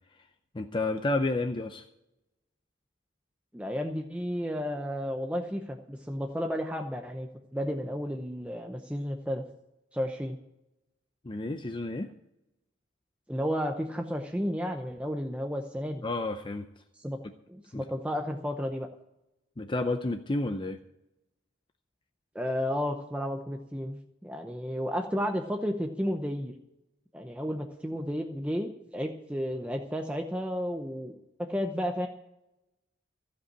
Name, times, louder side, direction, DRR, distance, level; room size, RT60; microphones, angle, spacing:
voice 1, 0.5-1.8 11.2-12.1 16.0-16.7 17.7-17.8 19.6-20.8, left 2 dB, 25° left, 6 dB, 0.6 m, -30 dB
voice 2, 3.5-9.4 9.9-10.4 13.3-16.0 17.0-17.2 17.5-18.9 22.3-26.5 27.1-31.1 31.4-32.1, equal, 5° right, 3 dB, 0.7 m, -32 dB
15.5 x 5.3 x 9.8 m, 0.90 s
head